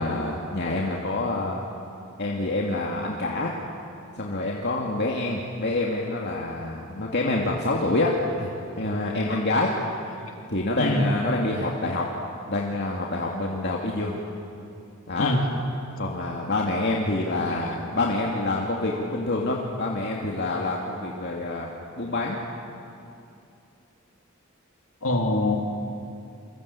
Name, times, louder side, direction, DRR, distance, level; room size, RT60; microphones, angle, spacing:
voice 1, 0.0-1.6 2.2-3.5 4.2-8.1 8.4-8.5 8.8-9.7 10.5-12.1 12.5-14.1 15.1-15.3 16.0-21.7 22.0-22.4, left 2 dB, 55° left, -2 dB, 2.4 m, -27 dB
voice 2, 10.8-11.1 15.2-15.4 25.0-25.6, left 2 dB, 75° left, 2 dB, 3.2 m, -23 dB
28.5 x 24.5 x 8.5 m, 2.6 s
head